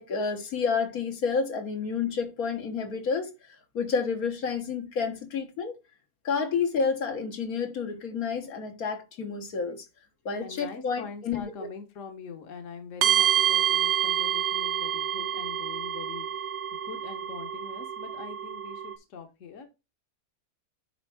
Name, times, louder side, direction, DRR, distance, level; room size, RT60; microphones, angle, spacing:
voice 1, 0.0-3.3 3.7-5.8 6.2-9.9 10.3-11.4, left 5 dB, 80° left, 1.8 m, -29 dB
voice 2, 10.4-16.5 16.8-19.7, left 6 dB, 60° left, 1.4 m, -43 dB
sound 1, 13.0-19.0, right 10 dB, 65° right, 1.0 m, -27 dB
9.7 x 3.6 x 3.4 m
omnidirectional pair, 1.5 m